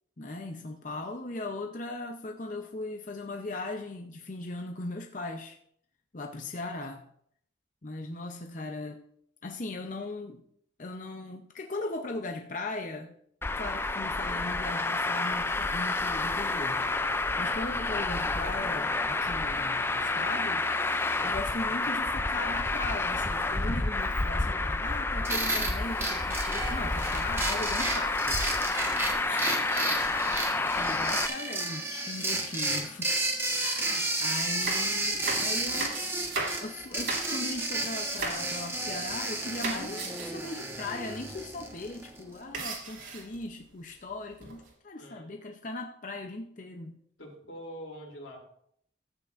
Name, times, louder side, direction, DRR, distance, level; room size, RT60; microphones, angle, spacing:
voice 1, 0.2-5.6 6.1-7.1 7.8-9.0 9.4-10.4 10.8-13.1 13.6-20.7 20.9-28.8 29.2-29.7 30.7-33.3 33.6-36.0 36.6-47.0, left 2 dB, 40° left, 3 dB, 0.7 m, -38 dB
voice 2, 6.2-6.5 26.5-27.0 29.5-30.2 45.0-45.3 47.2-48.5, equal, 90° left, 0 dB, 3.0 m, -46 dB
Traffic noise roadway noise, 13.4-31.3, left 2 dB, 10° left, 0.3 m, -29 dB
sound 1, 25.2-42.2, right 2 dB, 15° right, 1.3 m, -32 dB
sound 2, 34.4-37.6 38.1-38.6 38.9-39.3 39.6-40.4 40.8-40.9 41.1-41.3 42.5-43.4 44.1-44.7, right 3 dB, 80° right, 2.8 m, -36 dB
14.0 x 8.7 x 2.5 m, 0.67 s
head